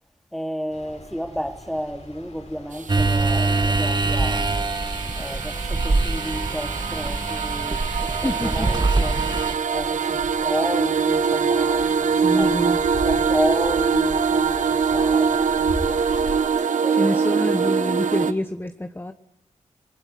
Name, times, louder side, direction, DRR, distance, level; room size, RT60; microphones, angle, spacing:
voice 1, 0.3-4.6 5.2-12.6 13.0-16.4 16.8-17.5, equal, ahead, 2.7 m, -31 dB
sound 1, 0.7-16.3, left 2 dB, 60° left, 5.2 m, -40 dB
sound 2, 2.7-18.3, right 6 dB, 75° right, 1.3 m, -23 dB
sound 3, 2.9-9.5, right 3 dB, 35° right, 1.4 m, -24 dB
voice 2, 7.9-8.7 12.2-12.8 16.9-19.1, left 1 dB, 15° left, 1.3 m, -27 dB
21.0 x 20.0 x 9.4 m
cardioid pair, 45°, 13 cm